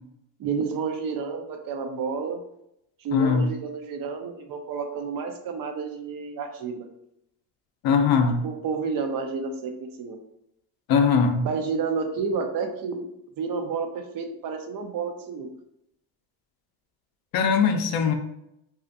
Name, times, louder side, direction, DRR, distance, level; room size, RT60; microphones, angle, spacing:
voice 1, 0.4-2.4 3.0-6.9 8.4-10.2 11.4-13.1 13.4-15.5, right 5 dB, 50° right, 5 dB, 0.5 m, -30 dB
voice 2, 3.1-3.5 7.8-8.4 10.9-11.5 17.3-18.1, left 5 dB, 55° left, 5 dB, 0.5 m, -20 dB
2.4 x 2.4 x 2.5 m, 0.80 s
supercardioid pair, 95°, 46 cm